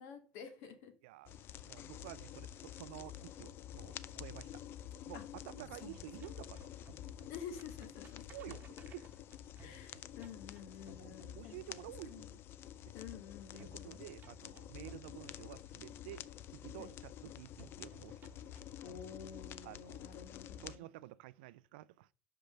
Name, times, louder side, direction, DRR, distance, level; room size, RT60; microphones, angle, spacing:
voice 1, 0.0-0.9 5.1-5.2 5.8-6.0 7.3-8.3 9.6-12.4 12.9-14.1 16.8-16.9 18.8-20.9, left 7 dB, 65° left, 1.9 m, -50 dB
voice 2, 1.0-1.4 1.6-4.6 5.1-6.7 8.3-9.1 11.0-12.4 12.8-12.9 13.5-16.2 16.5-18.2 19.6-20.2 20.6-22.1, right 16 dB, 80° right, 0.4 m, -51 dB
sound 1, 1.3-20.8, left 11 dB, 45° left, 0.5 m, -49 dB
sound 2, 3.2-5.2 5.5-11.9 13.6-15.9 17.6-19.9, right 3 dB, 35° right, 1.1 m, -61 dB
5.7 x 5.2 x 6.7 m
supercardioid pair, 110°, 5 cm